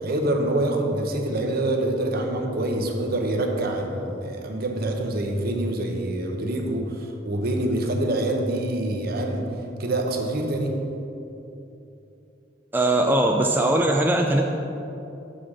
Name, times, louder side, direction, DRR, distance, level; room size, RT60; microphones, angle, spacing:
voice 1, 0.0-10.9, right 1 dB, 55° right, 3 dB, 0.8 m, -26 dB
voice 2, 12.7-14.4, right 1 dB, 10° right, 1 dB, 0.3 m, -20 dB
5.7 x 5.0 x 6.2 m, 2.9 s
head